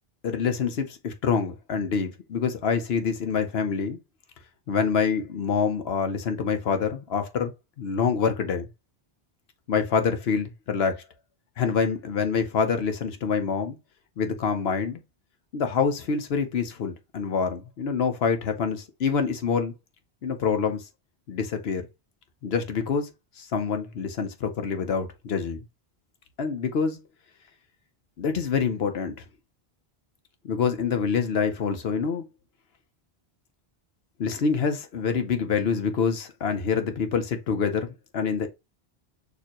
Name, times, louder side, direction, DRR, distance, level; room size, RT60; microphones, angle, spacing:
voice 1, 0.2-4.0 4.7-8.7 9.7-11.0 11.6-13.8 14.2-15.0 15.5-19.7 20.2-20.8 21.3-21.9 22.4-23.1 23.4-25.6 26.4-27.0 28.2-29.1 30.4-32.2 34.2-38.5, left 6 dB, 75° left, 1.0 m, -26 dB
6.6 x 2.8 x 2.9 m
omnidirectional pair, 1.1 m